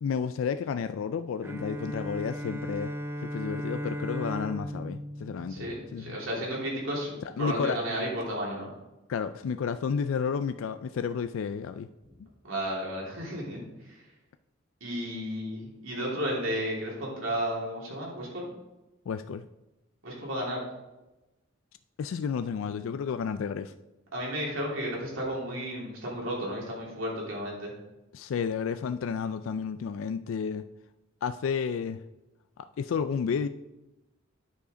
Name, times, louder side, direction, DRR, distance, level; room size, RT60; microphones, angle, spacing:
voice 1, 0.0-2.9 3.2-6.2 7.4-7.8 9.1-11.9 12.2-12.3 19.1-19.5 22.0-23.7 28.1-30.6 31.2-32.0 32.6-33.5, left 6 dB, 75° left, 11 dB, 0.3 m, -31 dB
Bowed string instrument, 1.4-6.3, equal, 10° right, 0.4 m, -36 dB
voice 2, 5.5-8.7 12.4-14.0 14.8-18.5 20.0-20.6 24.1-27.7, equal, 75° right, -3 dB, 3.1 m, -33 dB
9.4 x 5.0 x 5.0 m, 1.0 s
head